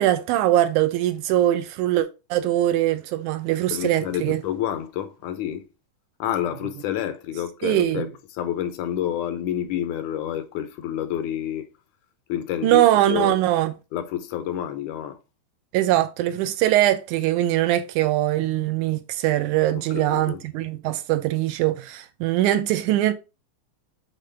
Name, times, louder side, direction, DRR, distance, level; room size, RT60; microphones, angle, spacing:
voice 1, 0.0-4.4 7.6-8.1 12.6-13.7 15.7-23.1, right 14 dB, 80° right, 2.0 m, -22 dB
voice 2, 3.7-5.6 6.2-11.7 12.3-13.4 13.9-15.2 19.8-20.4, left 11 dB, 80° left, 2.1 m, -29 dB
7.6 x 3.8 x 3.2 m
omnidirectional pair, 3.6 m